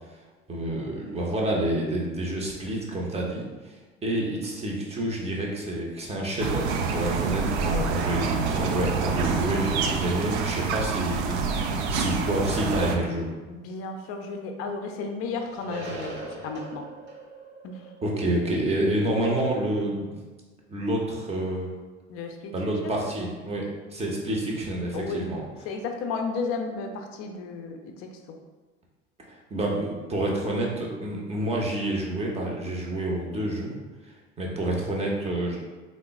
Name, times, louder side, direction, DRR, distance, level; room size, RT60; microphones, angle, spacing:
voice 1, 0.5-13.3 18.0-20.1 20.7-21.7 22.5-25.4 29.3-33.7 34.0-34.1 34.4-35.6, right 1 dB, 15° right, -2 dB, 0.7 m, -28 dB
sound 1, 6.4-13.0, right 4 dB, 60° right, 0.5 m, -27 dB
voice 2, 7.7-8.1 13.5-16.8 17.6-17.8 22.1-22.5 22.8-23.0 24.9-25.3 25.7-28.1, left 4 dB, 40° left, 4 dB, 0.5 m, -33 dB
sound 2, 13.2-14.2 14.5-14.6 15.3-18.4, right 2 dB, 45° right, 1.1 m, -41 dB
3.7 x 2.1 x 3.4 m, 1.3 s
figure-of-eight pair, 70°, 37 cm